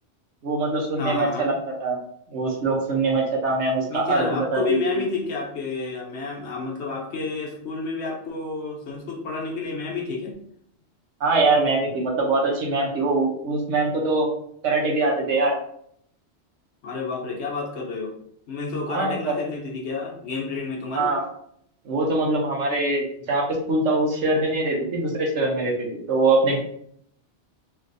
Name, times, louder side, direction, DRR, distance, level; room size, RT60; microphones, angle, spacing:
voice 1, 0.4-1.5 1.8-2.0 2.3-5.0 11.2-14.3 14.6-15.5 18.9-19.4 20.9-21.3 21.8-26.6, right 2 dB, 80° right, 0 dB, 1.1 m, -23 dB
voice 2, 1.0-1.5 3.8-10.3 16.8-18.1 18.5-21.1, left 4 dB, 70° left, -1 dB, 1.0 m, -30 dB
3.3 x 2.5 x 2.5 m, 0.68 s
omnidirectional pair, 1.2 m